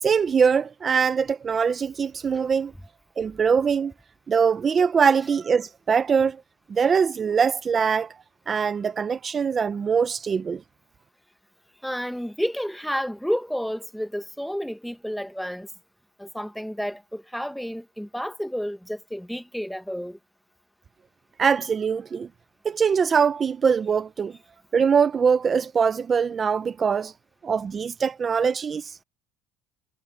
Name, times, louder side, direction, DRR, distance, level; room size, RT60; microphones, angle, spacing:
voice 1, 0.0-2.7 3.2-3.9 4.3-6.4 6.7-8.1 8.5-10.6 21.4-22.3 22.6-24.4 24.7-27.1 27.4-29.0, right 6 dB, 25° right, 0.5 m, -22 dB
voice 2, 11.8-15.7 16.2-20.2, equal, ahead, 0.8 m, -31 dB
cardioid pair, 160°, 0 cm